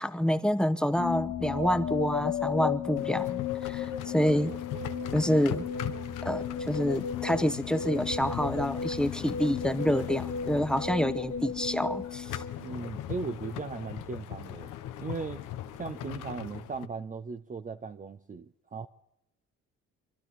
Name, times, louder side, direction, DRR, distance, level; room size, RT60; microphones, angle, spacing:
voice 1, 0.0-4.5 5.1-5.7 6.2-12.4, equal, 5° left, 1.0 m, -28 dB
sound 1, 1.0-13.0, left 7 dB, 55° left, 1.2 m, -34 dB
sound 2, 3.0-16.9, left 12 dB, 90° left, 1.0 m, -40 dB
voice 2, 12.6-14.7 15.0-15.4 15.8-18.9, right 5 dB, 25° right, 0.6 m, -38 dB
27.5 x 12.0 x 4.2 m
cardioid pair, 90°, 30 cm